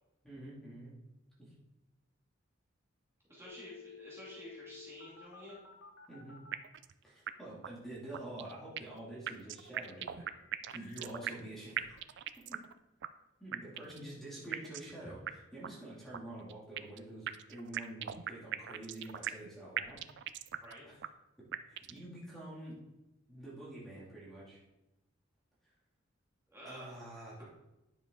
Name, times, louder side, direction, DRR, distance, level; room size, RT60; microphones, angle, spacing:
voice 1, 0.2-1.0 1.4-1.5 6.1-6.4 7.0-10.2 10.7-12.0 12.5-12.6 13.4-20.0 20.8-21.0 21.7-22.8 23.3-24.6 26.6-27.4, right 1 dB, ahead, -7 dB, 2.6 m, -47 dB
voice 2, 3.3-5.6 20.6-20.9 26.5-26.9, equal, 15° right, -7 dB, 2.5 m, -50 dB
sound 1, 3.4-6.5 10.3-11.1, left 5 dB, 65° left, 1.4 m, -53 dB
sound 2, 6.5-6.9 7.3-7.4 7.6-7.7 8.1-9.0 9.3-11.5 11.8-12.7 13.0-13.1 13.5-14.0 14.5-14.9 15.3-15.4 15.6-15.7 16.1-17.0 17.3-19.5 19.8-20.7 21.0-21.1 21.5-22.0, right 11 dB, 60° right, 0.4 m, -39 dB
10.5 x 7.0 x 3.8 m, 0.96 s
head